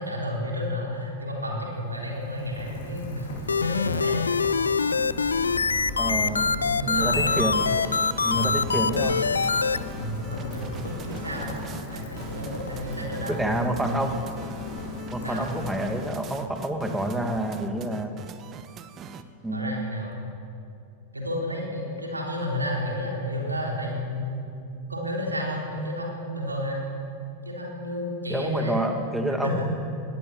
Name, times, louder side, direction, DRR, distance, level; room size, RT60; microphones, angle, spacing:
voice 1, 0.0-4.2 4.8-5.2 6.0-7.4 8.3-8.5 9.9-11.5 11.9-13.4 15.2-15.5 19.5-20.2 21.1-24.5 24.9-26.8 27.4-28.8 29.4-29.7, left 1 dB, 80° right, -1 dB, 3.8 m, -32 dB
Rain, 1.6-16.4, left 3 dB, 55° left, 4.9 m, -38 dB
sound 1, 3.5-9.8, left 5 dB, 75° left, 0.5 m, -24 dB
voice 2, 6.0-6.4 6.9-7.7 8.2-9.2 13.3-14.2 15.1-18.3 19.4-19.8 28.3-29.7, right 1 dB, 5° right, 5 dB, 2.2 m, -28 dB
sound 2, 7.1-19.2, right 7 dB, 30° right, 1.2 m, -42 dB
21.0 x 17.5 x 7.3 m, 2.5 s
figure-of-eight pair, 90°, 0 cm